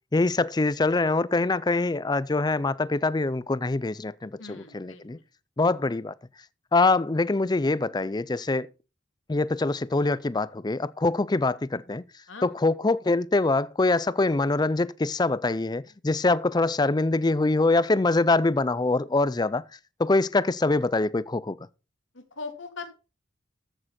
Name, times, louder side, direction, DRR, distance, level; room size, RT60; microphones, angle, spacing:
voice 1, 0.1-5.2 5.6-6.1 6.7-8.7 9.3-12.0 12.4-19.7 20.0-21.6, left 3 dB, 20° left, 0.5 m, -24 dB
voice 2, 4.4-5.2 12.3-12.5 22.1-22.9, left 4 dB, 75° left, 2.4 m, -40 dB
14.0 x 6.7 x 4.2 m
head